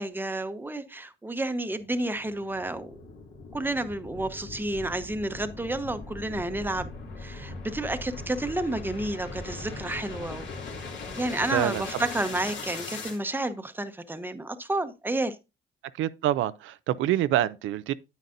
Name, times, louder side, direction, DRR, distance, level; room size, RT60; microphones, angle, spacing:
voice 1, 0.0-2.9 3.5-6.9 7.2-10.5 11.2-15.4, right 1 dB, 10° right, 0.9 m, -30 dB
sound 1, 1.7-13.2, left 3 dB, 65° left, 2.5 m, -40 dB
voice 2, 11.5-11.8 16.0-17.9, right 13 dB, 85° right, 0.5 m, -26 dB
9.2 x 8.3 x 2.6 m
cardioid pair, 90°, 20 cm